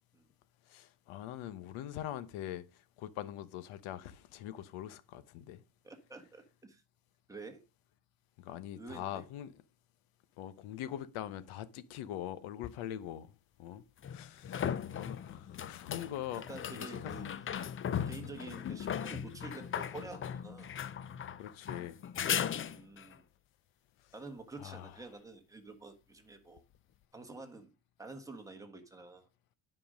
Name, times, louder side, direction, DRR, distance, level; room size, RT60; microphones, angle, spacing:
voice 1, 0.7-5.6 8.4-9.5 10.4-13.3 13.6-16.4 16.7-17.5 18.1-18.3 21.4-22.0 24.6-24.9, left 12 dB, 85° left, 1.1 m, -43 dB
voice 2, 5.8-6.8 7.3-7.6 8.8-9.2 16.5-17.3 18.0-20.7 22.4-23.2 24.1-26.6 27.1-27.7 28.0-29.3, right 3 dB, 5° right, 1.4 m, -48 dB
sound 1, 12.6-12.7 14.0-23.2 26.6-26.7, left 9 dB, 30° left, 0.4 m, -38 dB
9.6 x 5.5 x 5.1 m
cardioid pair, 150°, 48 cm